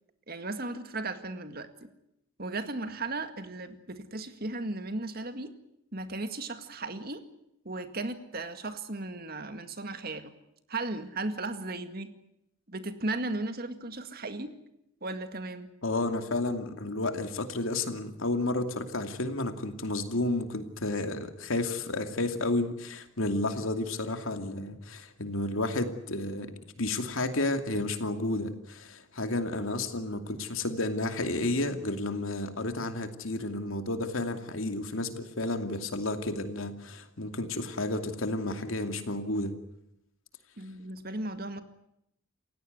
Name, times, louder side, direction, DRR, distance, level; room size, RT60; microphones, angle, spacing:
voice 1, 0.3-1.9 2.4-5.5 5.9-7.2 7.7-10.3 10.7-12.1 12.7-14.5 15.0-15.7 40.6-41.6, right 2 dB, 45° right, 9 dB, 2.0 m, -36 dB
voice 2, 15.8-39.5, left 2 dB, 75° left, 7 dB, 2.6 m, -31 dB
29.0 x 16.5 x 9.5 m, 0.81 s
head